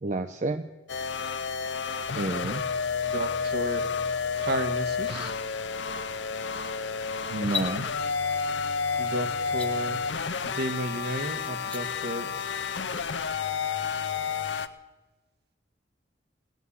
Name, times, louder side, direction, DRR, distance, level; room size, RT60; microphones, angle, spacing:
voice 1, 0.0-0.7 2.0-2.6 7.3-7.9, right 2 dB, 40° right, 8 dB, 0.5 m, -30 dB
sound 1, 0.9-14.7, left 5 dB, 75° left, 0.8 m, -30 dB
voice 2, 3.1-3.9 4.4-5.3 9.0-12.3, right 1 dB, 60° right, 9 dB, 1.1 m, -33 dB
sound 2, 7.4-7.7 9.5-9.7 11.5-11.8, left 8 dB, 5° left, 0.9 m, -33 dB
18.0 x 9.5 x 8.4 m, 1.2 s
head